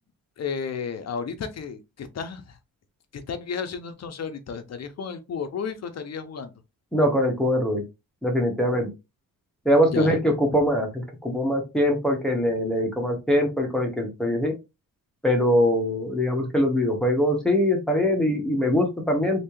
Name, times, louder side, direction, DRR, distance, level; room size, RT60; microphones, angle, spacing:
voice 1, 0.4-2.6 3.1-6.5 9.9-10.1, left 6 dB, 45° left, 0.8 m, -32 dB
voice 2, 6.9-7.8 8.2-8.9 9.6-14.5 15.2-19.4, equal, ahead, 1.3 m, -22 dB
3.2 x 2.9 x 3.1 m
cardioid pair, 105°, 35 cm